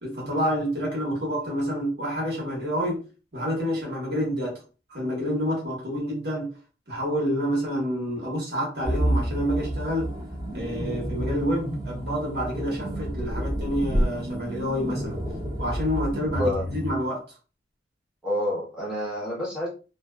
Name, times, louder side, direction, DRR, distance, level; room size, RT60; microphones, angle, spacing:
voice 1, 0.0-3.0 3.3-4.6 4.9-6.5 6.9-10.2 10.5-15.2 15.6-17.2, equal, 70° right, 1.2 m, -28 dB
sound 1, 8.8-16.9, equal, 20° right, 0.6 m, -29 dB
voice 2, 18.2-19.7, left 1 dB, 5° right, 0.9 m, -28 dB
2.5 x 2.3 x 2.2 m
head